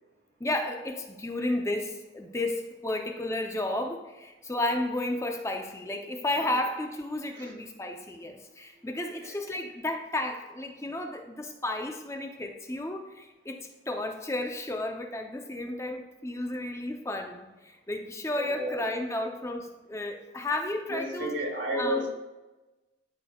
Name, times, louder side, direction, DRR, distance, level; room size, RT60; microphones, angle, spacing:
voice 1, 0.4-13.6 13.9-21.4 21.7-22.1, left 1 dB, 15° left, 3 dB, 0.6 m, -33 dB
voice 2, 18.3-18.9 20.9-22.1, right 1 dB, 80° right, 0 dB, 1.8 m, -32 dB
12.5 x 5.5 x 2.3 m, 1.1 s
head